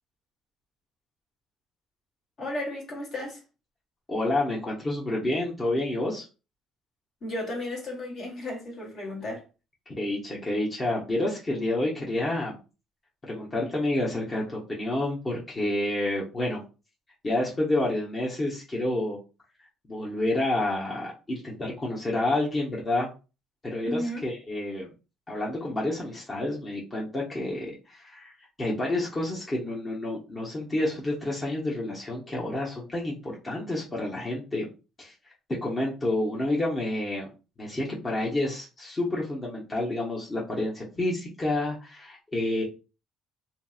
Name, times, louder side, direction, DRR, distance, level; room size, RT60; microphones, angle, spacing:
voice 1, 2.4-3.4 7.2-9.4 23.8-24.3, left 1 dB, 55° left, 1.5 m, -34 dB
voice 2, 4.1-6.3 10.0-12.6 13.2-16.6 17.2-19.2 19.9-23.1 23.6-24.9 25.3-28.3 28.6-34.7 35.0-35.1 35.6-37.3 37.6-42.6, left 1 dB, 30° left, 1.0 m, -29 dB
2.8 x 2.7 x 2.4 m
supercardioid pair, 70°, 0 cm